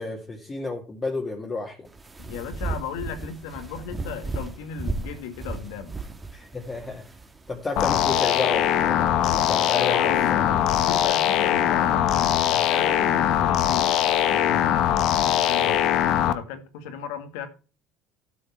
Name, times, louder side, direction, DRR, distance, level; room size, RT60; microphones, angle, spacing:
voice 1, 0.0-1.8 6.3-7.0 7.5-10.6, left 3 dB, 20° left, 2.1 m, -32 dB
sound 1, 1.9-8.3, right 3 dB, 15° right, 1.6 m, -35 dB
voice 2, 2.2-5.9 9.7-13.9 14.3-17.5, left 7 dB, 85° left, 2.1 m, -35 dB
sound 2, 7.8-16.3, left 11 dB, 65° left, 1.1 m, -21 dB
12.5 x 6.7 x 4.4 m
supercardioid pair, 110°, 0 cm